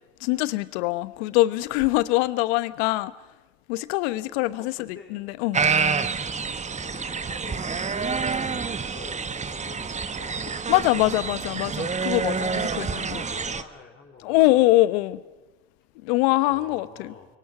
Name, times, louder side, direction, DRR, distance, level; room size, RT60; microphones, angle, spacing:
voice 1, 0.2-3.1 3.7-5.6 10.7-13.2 14.2-15.2 16.0-17.1, left 18 dB, 70° left, 1.1 m, -23 dB
voice 2, 4.6-5.2 6.8-10.7 12.9-14.6 16.5-17.3, left 5 dB, 35° left, 4.1 m, -46 dB
sound 1, 5.5-13.6, right 5 dB, 20° right, 1.3 m, -28 dB
25.5 x 23.5 x 6.1 m
hypercardioid pair, 80°, 33 cm